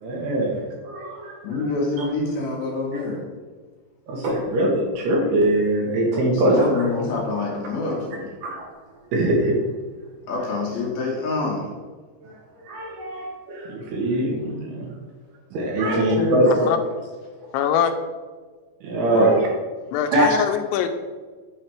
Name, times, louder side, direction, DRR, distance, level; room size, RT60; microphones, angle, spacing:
voice 1, 0.0-1.7 2.0-2.1 4.1-6.9 8.4-8.7 9.1-9.6 12.2-12.3 12.6-14.9 15.5-16.7 17.4-17.5 18.8-19.5 20.1-20.4, right 1 dB, 75° right, -2 dB, 2.7 m, -22 dB
voice 2, 1.4-3.2 6.2-8.3 10.3-11.7 15.9-16.5 19.1-19.3, left 3 dB, 70° left, -3 dB, 2.6 m, -26 dB
sound 1, 4.2-9.9, right 1 dB, 45° right, 2.8 m, -39 dB
voice 3, 17.5-17.9 19.9-20.9, left 9 dB, 85° left, 8 dB, 2.9 m, -22 dB
9.8 x 3.3 x 4.4 m, 1.4 s
omnidirectional pair, 5.3 m